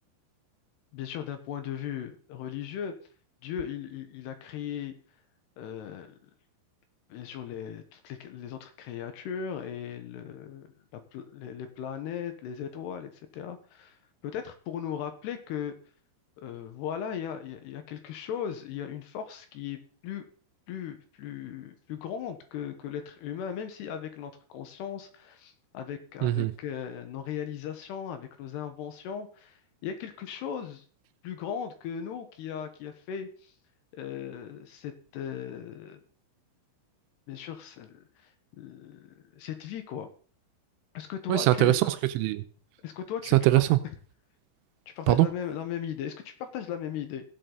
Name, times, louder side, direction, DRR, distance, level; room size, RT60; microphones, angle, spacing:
voice 1, 0.9-2.9 3.4-4.9 5.6-6.3 7.1-14.0 14.2-15.7 16.4-20.3 20.7-30.8 31.2-33.5 33.9-36.0 37.3-40.1 40.9-41.8 42.8-43.4 43.8-43.9 45.0-47.2, left 8 dB, 70° left, 3.0 m, -37 dB
voice 2, 26.2-26.5 41.3-42.4 43.3-43.8 45.1-45.3, right 16 dB, 85° right, 3.2 m, -22 dB
17.0 x 7.6 x 4.0 m
omnidirectional pair, 5.6 m